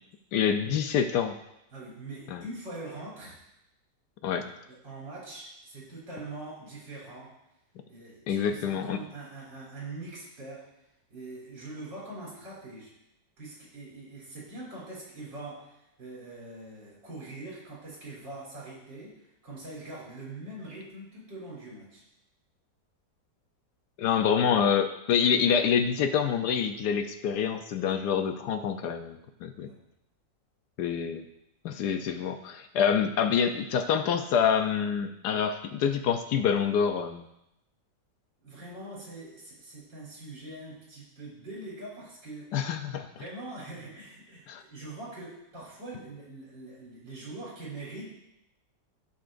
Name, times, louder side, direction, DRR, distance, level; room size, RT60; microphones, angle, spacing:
voice 1, 0.3-1.4 2.3-2.4 4.2-4.5 8.3-9.0 24.0-29.7 30.8-31.2 31.6-37.2 42.5-43.1 44.5-44.6, left 7 dB, 70° left, 7 dB, 1.1 m, -26 dB
voice 2, 1.7-3.4 4.4-7.3 7.9-10.7 11.1-12.9 13.4-22.0 29.7-29.9 38.4-42.5 43.1-48.1, right 2 dB, 80° right, -6 dB, 3.8 m, -43 dB
15.5 x 5.6 x 2.5 m, 0.84 s
omnidirectional pair, 2.0 m